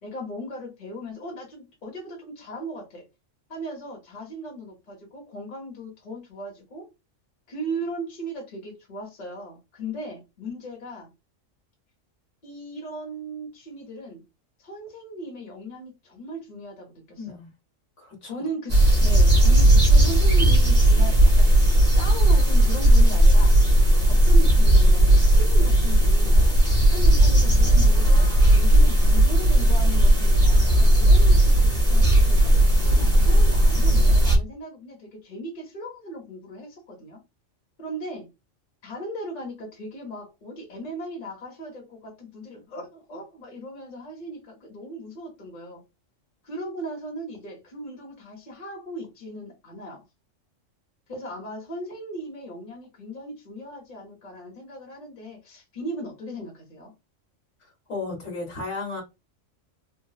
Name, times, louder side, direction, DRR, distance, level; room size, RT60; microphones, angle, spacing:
voice 1, 0.0-3.1 3.5-6.9 7.5-11.1 12.4-14.2 14.6-17.4 18.2-23.6 24.1-26.4 26.9-32.6 32.8-37.2 37.8-38.3 38.8-45.8 46.4-50.0 51.1-56.9, right 1 dB, 40° left, 1.1 m, -37 dB
voice 2, 17.2-17.5 18.0-18.3 57.9-59.0, left 3 dB, 65° left, 1.6 m, -34 dB
sound 1, 18.7-34.4, right 1 dB, 30° right, 1.6 m, -16 dB
3.8 x 2.3 x 2.3 m
omnidirectional pair, 1.3 m